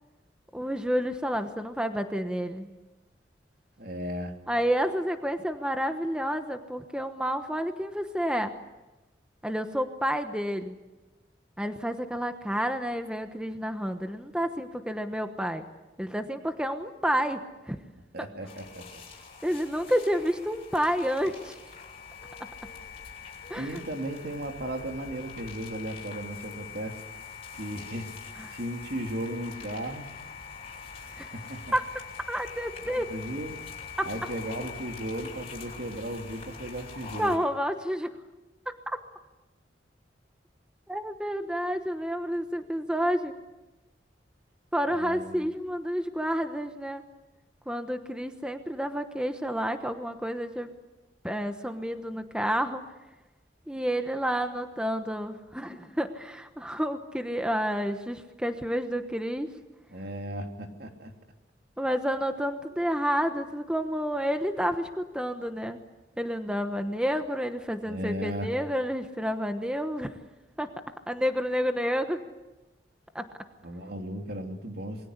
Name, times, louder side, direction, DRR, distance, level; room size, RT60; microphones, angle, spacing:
voice 1, 0.5-2.7 4.5-8.5 9.4-10.8 11.6-15.6 16.0-17.4 17.7-17.8 18.2-18.3 19.4-21.6 23.5-23.8 28.4-28.5 31.1-31.3 31.7-31.8 32.3-33.1 34.0-34.1 37.2-38.1 38.7-39.0 40.9-43.3 44.7-47.0 47.7-50.7 51.2-52.8 53.7-59.5 61.8-65.8 66.2-70.1 70.6-70.7 71.1-72.2 73.1-73.3, equal, 5° right, 7 dB, 1.1 m, -30 dB
voice 2, 3.8-4.3 18.1-19.0 23.5-27.0 27.6-28.1 28.5-30.1 31.0-31.1 31.3-31.6 32.8-33.6 34.0-37.4 44.9-45.5 59.9-61.1 67.8-68.5 73.6-75.1, right 1 dB, 60° right, 3 dB, 3.1 m, -36 dB
sound 1, 18.5-37.4, left 6 dB, 35° left, 7.8 m, -44 dB
27.5 x 22.0 x 8.2 m, 1.1 s
head